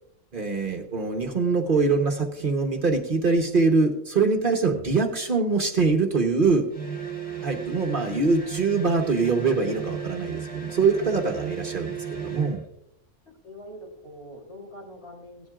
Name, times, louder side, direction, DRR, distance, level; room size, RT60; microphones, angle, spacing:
voice 1, 0.3-6.7 7.4-12.6, right 4 dB, 45° right, 3 dB, 1.1 m, -23 dB
sound 1, 6.7-12.6, right 7 dB, 5° left, 1.9 m, -34 dB
voice 2, 7.2-7.6 10.5-10.8 13.3-15.5, equal, 60° left, 0 dB, 3.6 m, -44 dB
17.0 x 10.5 x 2.4 m, 0.78 s
omnidirectional pair, 1.3 m